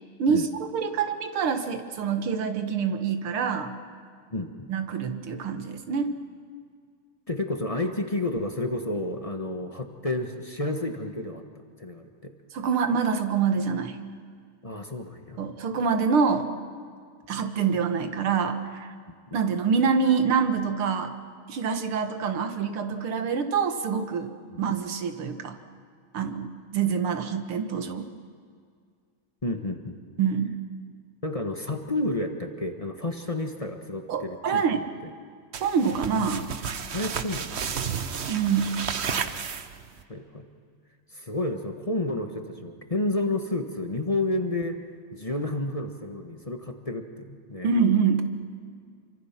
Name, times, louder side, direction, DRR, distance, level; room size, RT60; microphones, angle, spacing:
voice 1, 0.7-3.7 4.7-6.1 12.5-14.0 15.4-16.5 17.3-18.9 19.3-21.1 21.5-24.3 24.6-25.6 26.1-28.1 30.2-30.6 34.1-34.8 35.6-36.5 38.3-38.8 47.6-48.2, right 6 dB, 85° right, 7 dB, 2.3 m, -26 dB
voice 2, 4.3-4.7 7.3-11.4 11.8-12.3 14.6-15.4 19.3-19.4 24.5-24.6 29.4-30.0 31.2-34.6 35.0-35.1 36.9-37.7 40.1-40.5 41.1-44.8 45.1-47.7, left 2 dB, 20° left, 4 dB, 1.2 m, -30 dB
sound 1, 35.5-40.0, right 7 dB, 50° right, 0.7 m, -32 dB
28.0 x 24.5 x 5.9 m, 2.1 s
omnidirectional pair, 2.3 m